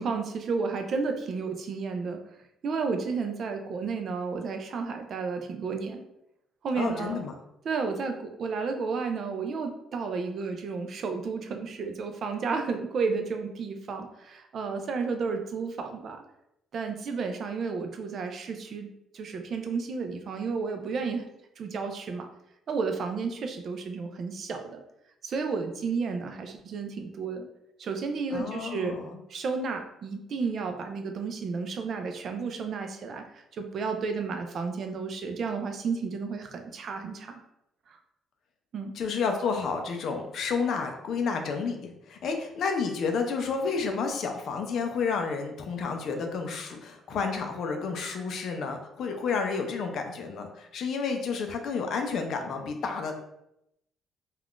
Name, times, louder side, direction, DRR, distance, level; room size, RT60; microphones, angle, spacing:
voice 1, 0.0-2.2 2.6-6.0 6.6-7.2 7.7-16.2 16.7-21.3 21.6-22.3 22.7-24.8 25.2-27.5 27.8-29.0 29.3-33.2 33.5-37.4 38.7-38.9, right 4 dB, 40° right, 6 dB, 0.3 m, -32 dB
voice 2, 6.7-7.3 28.3-29.2 38.9-53.1, left 5 dB, 50° left, 4 dB, 0.4 m, -30 dB
2.4 x 2.3 x 3.5 m, 0.81 s
cardioid pair, 165°, 0 cm